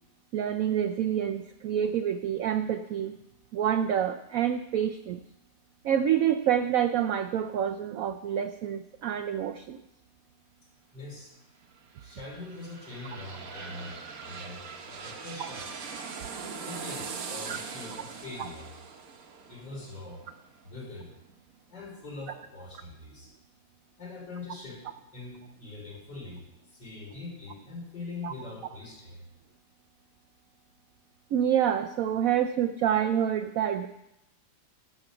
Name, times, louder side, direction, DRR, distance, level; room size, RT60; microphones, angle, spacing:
voice 1, 0.3-3.2 3.5-5.2 5.8-9.8 15.4-15.5 17.5-17.6 18.4-18.5 28.2-28.3 31.3-33.9, right 9 dB, 75° right, 7 dB, 0.7 m, -27 dB
voice 2, 10.9-11.3 12.0-15.6 16.6-18.7 19.5-20.2 20.7-21.1 21.7-23.3 24.0-24.8 25.1-26.4 26.7-29.2, left 3 dB, 70° left, -4 dB, 4.7 m, -42 dB
sound 1, 11.7-21.3 21.8-21.9, right 5 dB, 60° right, 1.2 m, -41 dB
12.0 x 5.3 x 7.7 m, 0.89 s
omnidirectional pair, 1.9 m